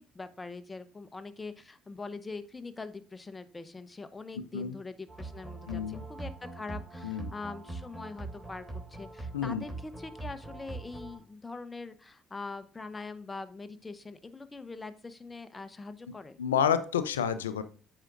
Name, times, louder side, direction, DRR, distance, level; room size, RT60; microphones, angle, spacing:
voice 1, 0.0-16.4, left 3 dB, 25° left, 12 dB, 0.9 m, -43 dB
sound 1, 5.1-11.2, right 2 dB, 5° left, 3.2 m, -42 dB
voice 2, 5.7-6.0 7.0-7.3 9.3-9.6 16.4-17.6, left 8 dB, 85° left, 13 dB, 0.5 m, -29 dB
13.5 x 5.0 x 2.6 m, 0.40 s
hypercardioid pair, 50°, 0 cm